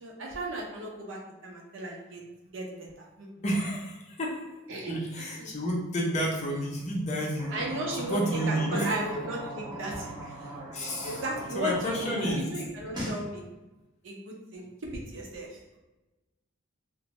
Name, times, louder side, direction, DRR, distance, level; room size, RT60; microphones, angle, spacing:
voice 1, 0.0-2.2 2.5-3.4 4.7-5.0 5.4-5.5 7.5-8.2 8.5-10.1 10.4-10.5 11.0-13.4 14.0-15.6, right 1 dB, 60° right, -2 dB, 0.6 m, -35 dB
voice 2, 3.4-4.4 4.9-7.5 8.0-9.0 10.7-11.2 11.5-12.5, equal, 30° left, -3 dB, 0.5 m, -30 dB
sound 1, 7.3-12.4 12.7-13.2, right 1 dB, 20° right, 0.6 m, -39 dB
2.6 x 2.1 x 3.0 m, 1.1 s
head